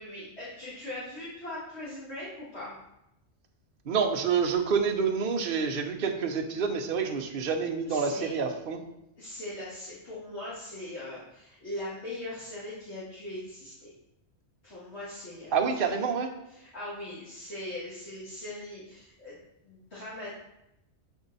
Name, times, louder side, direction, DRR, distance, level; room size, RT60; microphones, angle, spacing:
voice 1, 0.0-2.8 7.9-8.4 9.2-13.9 14.6-15.8 16.5-20.4, left 1 dB, 65° left, -10 dB, 2.1 m, -40 dB
voice 2, 3.9-8.8 15.5-16.3, right 6 dB, 55° right, 4 dB, 0.9 m, -28 dB
8.1 x 4.4 x 4.0 m, 0.85 s
omnidirectional pair, 1.2 m